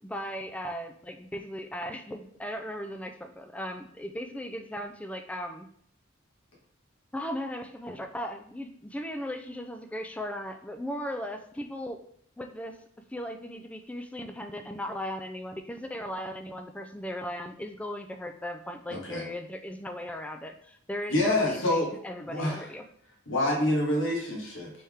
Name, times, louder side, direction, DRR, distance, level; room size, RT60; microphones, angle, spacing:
voice 1, 0.0-5.7 7.1-12.0 12.4-12.8 13.1-22.9, equal, 5° left, 6 dB, 0.3 m, -37 dB
voice 2, 18.9-19.2 21.1-21.9 22.3-22.6 23.3-24.7, left 1 dB, 75° left, -2 dB, 1.3 m, -27 dB
4.2 x 3.4 x 3.5 m, 0.66 s
head